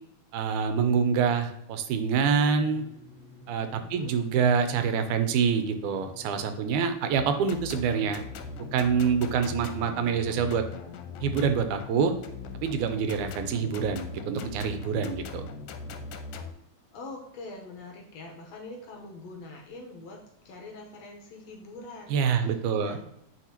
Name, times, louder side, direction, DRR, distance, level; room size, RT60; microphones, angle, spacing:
voice 1, 0.3-2.8 3.5-8.2 8.7-10.6 11.2-12.1 12.6-15.5 22.1-23.0, right 6 dB, 85° right, 8 dB, 2.0 m, -26 dB
sound 1, 2.1-16.1, left 2 dB, 35° left, 1.2 m, -51 dB
voice 2, 3.8-4.2 9.8-9.9 16.9-23.0, left 2 dB, 70° left, 0 dB, 2.0 m, -44 dB
sound 2, 7.2-16.5, left 5 dB, 85° left, 2.2 m, -40 dB
9.1 x 4.1 x 2.8 m, 0.78 s
omnidirectional pair, 3.5 m